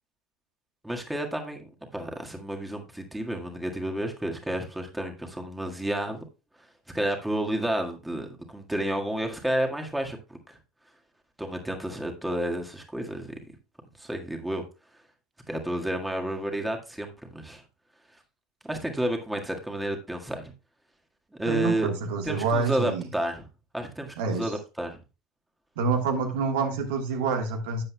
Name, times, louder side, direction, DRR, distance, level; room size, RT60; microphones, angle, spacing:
voice 1, 0.8-6.2 6.9-10.4 11.4-13.4 14.0-14.6 15.5-17.6 18.6-20.5 21.4-21.9 22.2-23.4 23.7-25.0, right 1 dB, 5° right, 3 dB, 1.7 m, -31 dB
voice 2, 21.5-23.1 24.2-24.5 25.8-27.8, right 4 dB, 75° right, 5 dB, 1.4 m, -27 dB
12.0 x 7.6 x 2.3 m, 0.29 s
hypercardioid pair, 80°, 0 cm